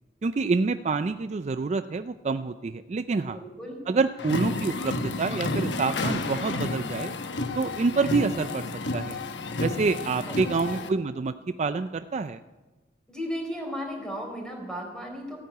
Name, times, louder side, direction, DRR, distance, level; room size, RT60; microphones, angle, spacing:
voice 1, 0.2-3.4 3.9-7.1 7.6-9.2 9.6-12.4, right 4 dB, 40° right, 11 dB, 0.4 m, -27 dB
voice 2, 3.3-3.8 10.3-10.8 13.1-15.4, equal, 5° left, 1 dB, 4.0 m, -35 dB
sound 1, 4.2-10.9, left 2 dB, 80° left, 1.1 m, -31 dB
15.0 x 9.4 x 9.1 m, 1.2 s
head